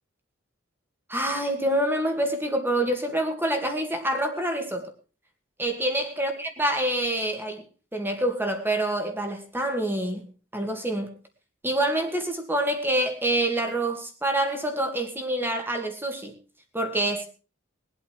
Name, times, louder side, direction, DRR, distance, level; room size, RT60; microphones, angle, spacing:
voice 1, 1.1-4.9 5.6-7.6 7.9-11.1 11.6-16.4 16.7-17.3, right 1 dB, 10° right, 4 dB, 2.6 m, -26 dB
21.5 x 8.5 x 4.8 m, 0.36 s
head